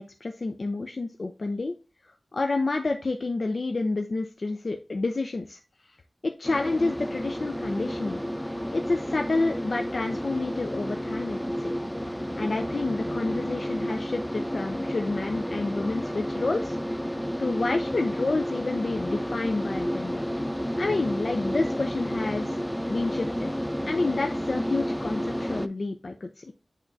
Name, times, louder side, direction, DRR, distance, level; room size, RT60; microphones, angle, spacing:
voice 1, 0.0-1.8 2.0-5.6 6.4-11.7 12.4-16.8 17.4-20.2 20.8-22.6 22.9-23.5 23.9-26.5, left 3 dB, 55° left, 4 dB, 0.6 m, -29 dB
sound 1, 6.4-25.7, equal, ahead, 0.4 m, -31 dB
9.9 x 3.7 x 2.7 m, 0.31 s
wide cardioid pair, 80°, 0 cm